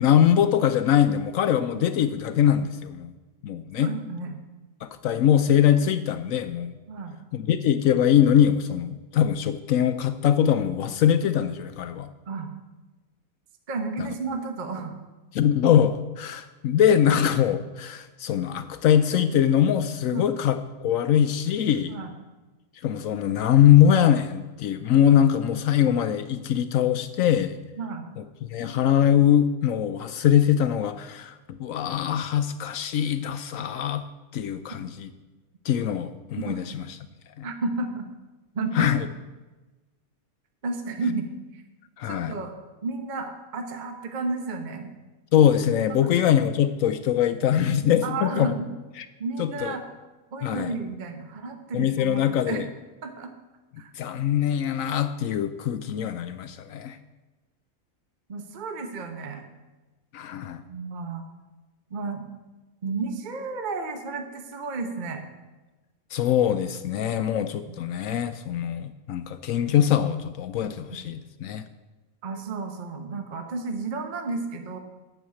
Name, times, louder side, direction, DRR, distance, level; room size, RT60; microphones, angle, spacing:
voice 1, 0.0-3.1 3.4-3.9 4.8-6.8 7.3-12.1 14.0-14.1 15.3-21.9 22.8-27.6 28.2-28.3 28.5-34.0 34.3-35.1 35.6-37.0 37.4-37.5 38.7-39.1 42.0-42.3 45.3-48.5 49.0-49.1 49.4-49.8 50.4-50.8 51.7-52.6 53.7-57.0 60.1-60.6 66.1-71.7, left 9 dB, 70° left, 10 dB, 0.9 m, -22 dB
voice 2, 3.8-4.4 6.9-7.1 12.3-12.5 13.7-14.9 20.1-20.3 21.9-22.1 27.8-28.1 36.4-36.6 37.4-38.1 38.5-39.0 40.6-41.3 41.5-41.6 42.1-42.5 42.8-44.9 45.7-46.1 48.0-48.7 49.2-49.8 50.3-52.6 53.0-53.3 53.8-53.9 56.0-56.1 58.3-59.4 60.7-61.2 61.9-62.2 62.8-65.2 67.3-67.7 72.2-74.8, right 3 dB, 35° right, 6 dB, 1.0 m, -32 dB
9.1 x 6.5 x 8.4 m, 1.2 s
omnidirectional pair, 1.5 m